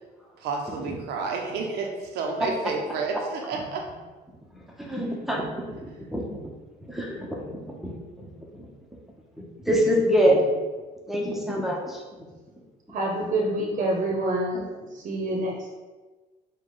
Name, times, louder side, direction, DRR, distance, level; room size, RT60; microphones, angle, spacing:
voice 1, 0.4-3.9, right 4 dB, 75° right, 1 dB, 0.7 m, -30 dB
voice 2, 4.8-6.2 6.8-7.4 7.8-7.9 8.5-8.7 9.7-10.4 11.1-12.0, equal, ahead, -2 dB, 0.8 m, -25 dB
voice 3, 12.9-14.7 14.9-15.7, right 1 dB, 50° right, -2 dB, 0.9 m, -27 dB
5.1 x 2.3 x 3.8 m, 1.3 s
cardioid pair, 110°, 17 cm